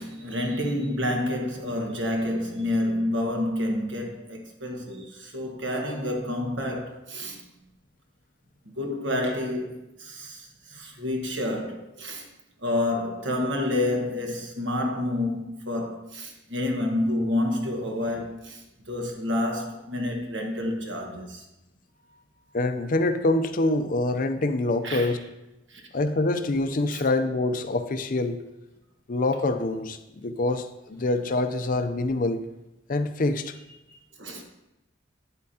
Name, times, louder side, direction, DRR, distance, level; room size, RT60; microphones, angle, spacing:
voice 1, 0.0-7.4 8.8-12.3 12.6-21.4 24.8-25.2 25.7-25.8 26.9-27.0 34.2-34.4, left 1 dB, 70° right, 1.4 m, -29 dB
voice 2, 22.5-25.2 25.9-28.4 29.1-32.4 32.9-33.6, left 2 dB, 45° left, 0.5 m, -25 dB
9.6 x 8.2 x 2.8 m
head